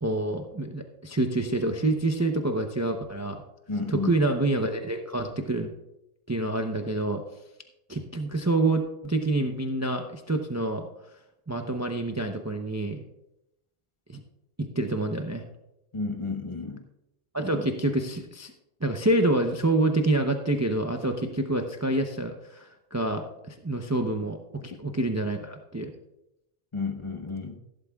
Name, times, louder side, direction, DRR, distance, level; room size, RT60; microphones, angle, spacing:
voice 1, 0.0-3.4 3.9-5.7 6.3-7.2 7.9-10.9 11.5-13.0 14.6-15.4 17.3-18.5 18.8-25.9, right 2 dB, 20° right, 4 dB, 0.6 m, -27 dB
voice 2, 3.7-4.1 15.9-16.8 26.7-27.6, left 4 dB, 30° left, 3 dB, 1.1 m, -31 dB
15.0 x 12.0 x 2.4 m, 0.89 s
omnidirectional pair, 1.1 m